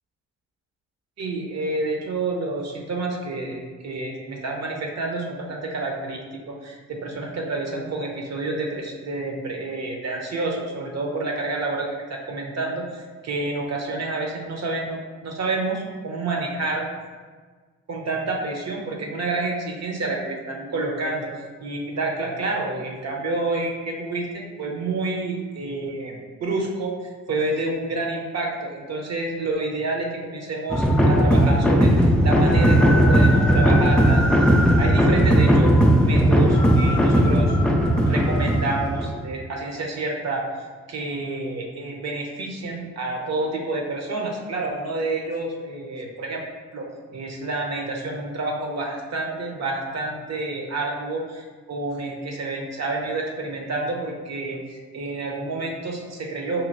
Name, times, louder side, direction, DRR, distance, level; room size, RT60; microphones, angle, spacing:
voice 1, 1.2-16.9 17.9-21.3 21.6-31.9 32.2-35.7 36.0-40.4 40.9-46.4 46.7-46.9 47.1-56.7, right 2 dB, 50° right, 0 dB, 0.9 m, -29 dB
sound 1, 30.7-39.2, equal, 5° left, 0.4 m, -17 dB
4.5 x 2.8 x 2.7 m, 1.5 s
hypercardioid pair, 50°, 33 cm